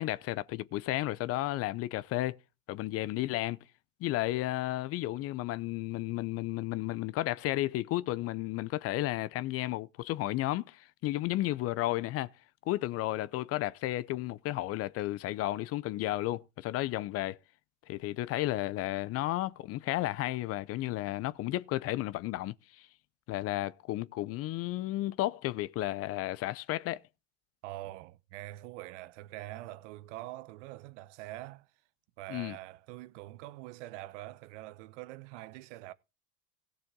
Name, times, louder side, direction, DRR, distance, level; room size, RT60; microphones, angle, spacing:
voice 1, 0.0-2.4 2.7-3.6 4.0-12.3 12.7-17.4 17.9-22.9 23.3-27.0 32.3-32.6, left 16 dB, 35° left, 0.5 m, -33 dB
voice 2, 27.6-31.7 32.2-35.9, right 17 dB, 60° right, 0.8 m, -44 dB
17.0 x 6.8 x 3.7 m
hypercardioid pair, 100°, 40 cm